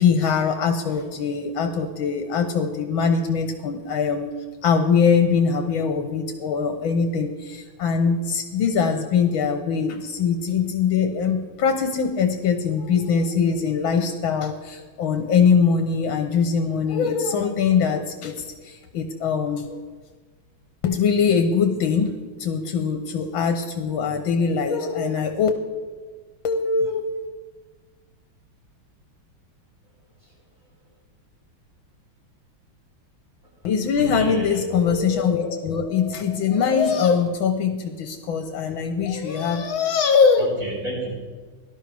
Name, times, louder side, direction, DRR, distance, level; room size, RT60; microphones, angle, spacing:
voice 1, 0.0-4.3 4.6-19.8 20.8-25.5 26.4-27.1 33.6-40.5, left 6 dB, 75° left, 6 dB, 1.8 m, -22 dB
voice 2, 33.9-34.6 40.4-41.1, right 1 dB, 40° right, -6 dB, 5.8 m, -31 dB
18.0 x 12.0 x 3.4 m, 1.4 s
omnidirectional pair, 2.2 m